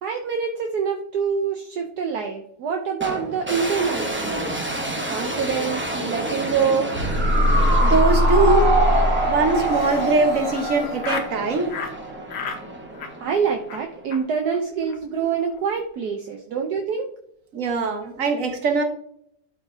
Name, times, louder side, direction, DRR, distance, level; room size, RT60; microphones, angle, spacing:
voice 1, 0.0-4.5 5.1-7.0 8.4-8.6 9.7-9.9 13.2-17.1, right 6 dB, 65° right, 3 dB, 1.3 m, -26 dB
sound 1, 3.0-14.2, right 1 dB, 15° right, 0.4 m, -31 dB
sound 2, 6.9-12.2 12.5-12.6, equal, 35° right, 2.5 m, -21 dB
voice 2, 7.8-8.7 9.3-11.7 17.5-18.8, right 3 dB, 50° right, 4 dB, 1.5 m, -21 dB
Laughter, 9.5-11.3 11.7-12.0 12.3-12.6 12.9-13.4 13.7-13.8 14.1-14.2 14.5-14.6 14.8-15.0 15.2-15.6, left 5 dB, 80° left, 1.8 m, -34 dB
12.5 x 4.8 x 2.8 m, 0.69 s
omnidirectional pair, 1.9 m